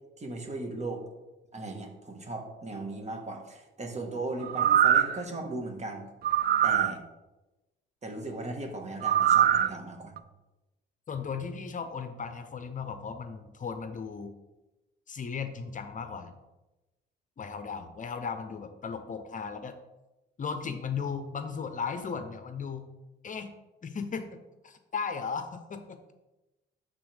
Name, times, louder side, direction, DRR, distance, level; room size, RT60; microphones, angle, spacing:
voice 1, 0.2-1.0 1.5-6.1 6.6-7.0 8.0-10.1, right 2 dB, 35° right, 3 dB, 1.6 m, -37 dB
sound 1, 4.4-5.2 6.2-6.9 9.0-9.7 10.2-10.3, right 10 dB, 55° right, 0.4 m, -23 dB
voice 2, 11.1-14.3 15.1-16.3 17.4-19.8 20.4-22.9 23.2-23.5 23.8-24.3 24.6-26.0, left 6 dB, 40° left, 8 dB, 0.7 m, -36 dB
12.0 x 4.1 x 3.5 m, 1.0 s
cardioid pair, 90°, 20 cm